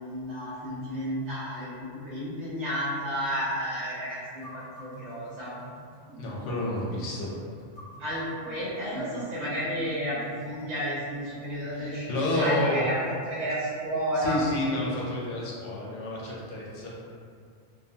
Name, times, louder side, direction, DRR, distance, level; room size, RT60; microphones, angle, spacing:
voice 1, 0.0-5.5 8.0-14.4, equal, 75° right, -11 dB, 1.4 m, -32 dB
sound 1, 4.3-12.8, right 1 dB, 10° right, 0.7 m, -47 dB
voice 2, 6.2-7.3 11.7-12.8 14.2-17.0, left 1 dB, 85° left, -4 dB, 1.0 m, -30 dB
2.6 x 2.2 x 2.7 m, 2.2 s
omnidirectional pair, 1.2 m